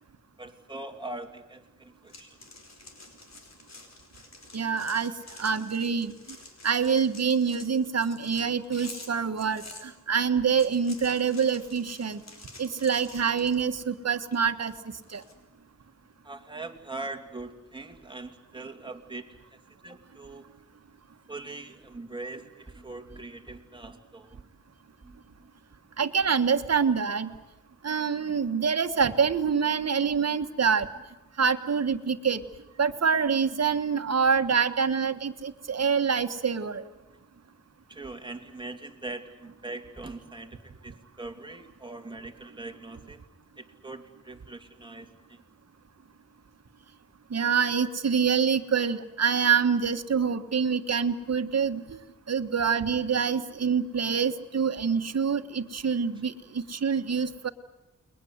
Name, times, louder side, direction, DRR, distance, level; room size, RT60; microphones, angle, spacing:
voice 1, 0.4-2.4 16.2-20.4 21.3-24.4 25.0-25.2 30.1-30.2 37.9-43.2 43.6-45.4 47.7-47.9 52.9-53.0, right 2 dB, 15° right, 4 dB, 2.8 m, -42 dB
sound 1, 2.1-9.8 10.4-13.9 14.3-15.3, left 3 dB, 60° left, 4.9 m, -48 dB
voice 2, 4.5-6.1 6.6-12.2 12.6-14.7 15.1-15.2 26.0-27.3 27.8-30.9 31.4-32.4 32.8-36.8 47.3-52.0 52.3-57.5, right 6 dB, 60° right, 8 dB, 1.6 m, -26 dB
30.0 x 21.5 x 8.1 m, 1.0 s
wide cardioid pair, 80°, 30 cm